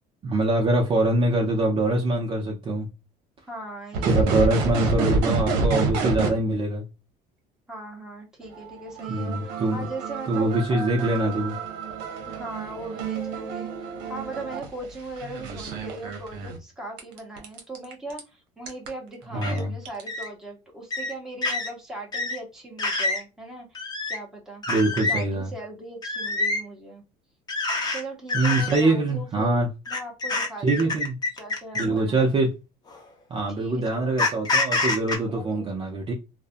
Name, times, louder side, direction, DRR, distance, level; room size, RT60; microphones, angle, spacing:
voice 1, 0.2-2.9 4.1-6.8 9.1-9.9 10.3-11.6 19.3-19.7 24.7-25.5 28.3-29.7 30.6-31.1 31.8-32.5 33.3-36.1, right 2 dB, 30° right, 0.5 m, -24 dB
voice 2, 3.5-4.6 7.7-11.6 12.2-24.6 25.1-27.0 27.9-31.0 31.4-32.3 33.6-34.2 35.3-35.7, right 1 dB, 5° right, 0.9 m, -39 dB
sound 1, 3.9-6.3 8.4-16.6 17.0-18.2 18.7-18.9 19.6-19.7 19.8-20.2, right 4 dB, 85° right, 0.7 m, -29 dB
sound 2, 19.4-19.6 20.1-20.3 20.9-21.1 21.4-21.7 22.1-22.4 22.8-23.2 23.7-24.2 24.6-25.2 26.0-26.6 27.5-28.0 28.3-28.8 29.9-32.0 32.9-33.0 34.2-35.2, left 3 dB, 25° left, 0.6 m, -26 dB
2.5 x 2.0 x 2.5 m
cardioid pair, 115°, 17 cm